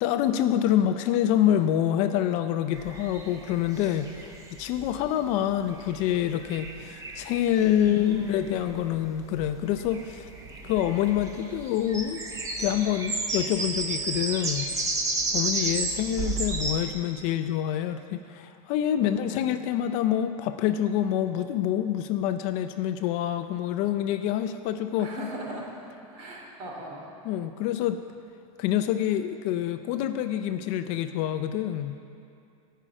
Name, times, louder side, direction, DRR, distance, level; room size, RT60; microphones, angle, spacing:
voice 1, 0.0-4.1 4.6-10.3 10.6-12.2 12.6-14.7 15.3-25.1 27.2-28.0 28.6-32.0, left 11 dB, 40° left, 9 dB, 0.5 m, -26 dB
sound 1, 2.7-16.9, right 3 dB, 20° right, 0.9 m, -33 dB
voice 2, 7.8-8.5 19.0-19.5 25.0-25.8 26.1-27.1, equal, 50° right, -1 dB, 2.7 m, -38 dB
11.0 x 5.6 x 8.8 m, 2.5 s
supercardioid pair, 150°, 18 cm